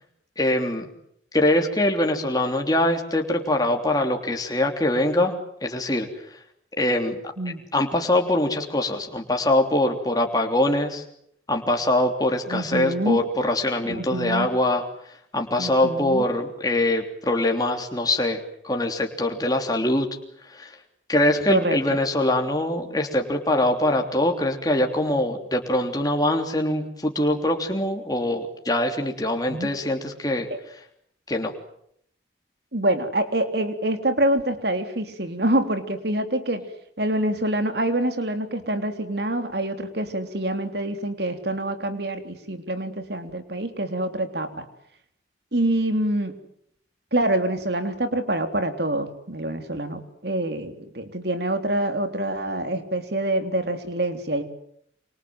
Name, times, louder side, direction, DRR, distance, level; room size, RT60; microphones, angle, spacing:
voice 1, 0.4-0.9 1.3-5.4 5.6-6.1 6.8-7.2 7.7-11.0 11.5-14.8 15.3-20.1 20.5-20.7 21.1-30.5 31.3-31.5, left 1 dB, 20° left, 3 dB, 3.3 m, -23 dB
voice 2, 12.5-13.2 13.8-14.5 15.6-16.2 21.5-22.0 29.5-29.7 30.5-30.6 32.7-36.6 37.0-44.7 45.5-46.3 47.1-54.4, right 1 dB, 60° right, 8 dB, 3.5 m, -26 dB
27.5 x 26.5 x 7.8 m, 0.70 s
head